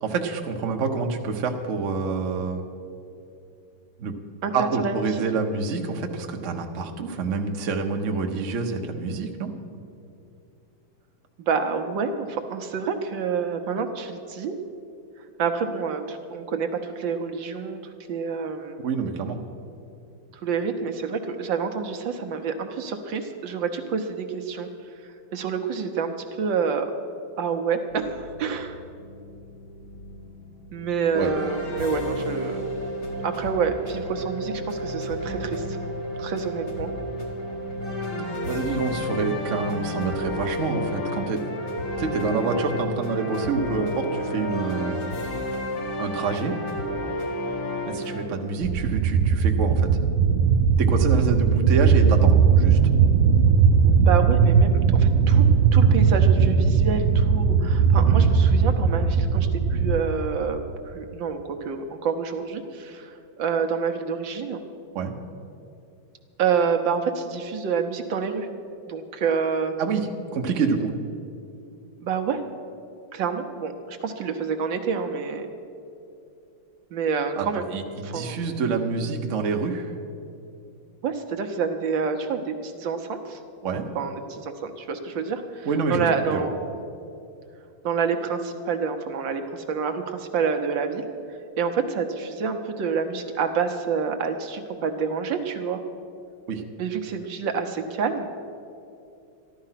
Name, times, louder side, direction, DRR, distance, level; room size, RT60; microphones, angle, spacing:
voice 1, 0.0-2.6 4.0-4.1 4.5-9.5 18.8-19.4 31.1-31.3 38.4-41.5 42.0-45.0 46.0-46.6 47.9-49.9 50.8-52.8 64.9-65.1 69.8-70.9 77.4-79.9 83.6-83.9 85.6-86.5 96.5-96.6, right 4 dB, 50° right, 3 dB, 1.0 m, -27 dB
voice 2, 4.4-5.0 11.4-14.5 15.4-18.8 20.4-24.7 25.3-26.9 27.4-28.8 30.7-32.6 33.2-35.8 36.2-36.9 54.0-64.6 66.4-68.5 68.9-69.7 72.0-72.4 73.1-75.5 76.9-77.7 78.0-78.4 81.0-83.4 83.9-86.7 87.8-95.8 96.8-98.3, right 5 dB, 70° right, 5 dB, 1.5 m, -28 dB
sound 1, 27.9-40.1, left 3 dB, 75° left, 1.8 m, -42 dB
sound 2, 31.1-48.2, equal, 55° left, 2.1 m, -31 dB
sound 3, 48.6-60.0, right 6 dB, 85° right, 1.5 m, -18 dB
14.0 x 12.0 x 5.7 m, 2.6 s
omnidirectional pair, 2.3 m